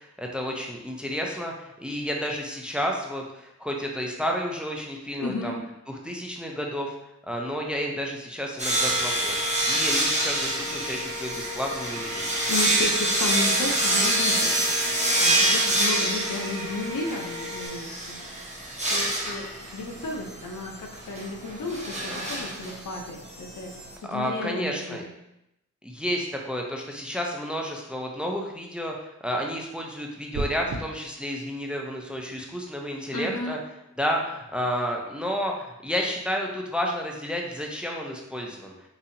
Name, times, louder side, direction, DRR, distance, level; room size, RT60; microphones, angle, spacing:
voice 1, 0.0-5.6 5.9-6.9 7.3-9.4 9.7-12.3 24.1-25.0 25.8-33.6 34.0-38.7, equal, 5° right, 1 dB, 0.5 m, -31 dB
voice 2, 5.2-5.5 12.5-14.5 15.2-18.2 18.9-19.5 19.7-23.7 24.0-25.1 33.1-33.6, left 2 dB, 80° left, 1 dB, 0.6 m, -33 dB
sound 1, 8.6-23.9, right 1 dB, 20° right, 0.9 m, -26 dB
sound 2, 8.7-17.7, left 3 dB, 35° left, 1.3 m, -38 dB
sound 3, 30.3-30.8, right 3 dB, 65° right, 0.4 m, -30 dB
4.0 x 2.7 x 2.6 m, 0.85 s
wide cardioid pair, 80°, 31 cm